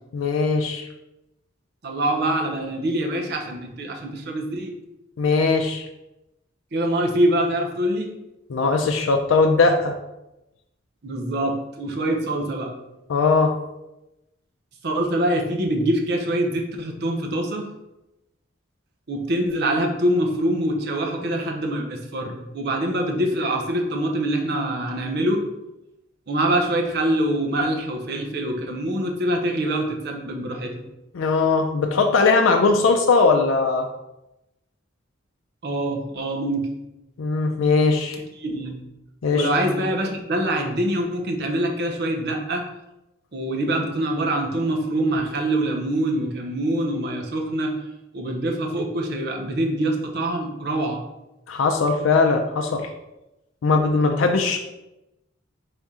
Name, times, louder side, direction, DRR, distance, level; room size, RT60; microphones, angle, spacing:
voice 1, 0.1-0.9 5.2-5.9 8.5-10.0 13.1-13.5 31.1-33.9 37.2-38.2 39.2-39.5 51.5-52.9 53.6-54.6, left 4 dB, 90° left, 4 dB, 0.4 m, -19 dB
voice 2, 1.8-4.8 6.7-8.1 11.0-12.7 14.8-17.7 19.1-25.4 26.3-30.8 35.6-36.7 38.4-38.8 39.3-42.6 43.3-47.7 48.1-51.0, right 1 dB, 60° right, 2 dB, 0.8 m, -24 dB
3.6 x 3.5 x 4.1 m, 0.94 s
head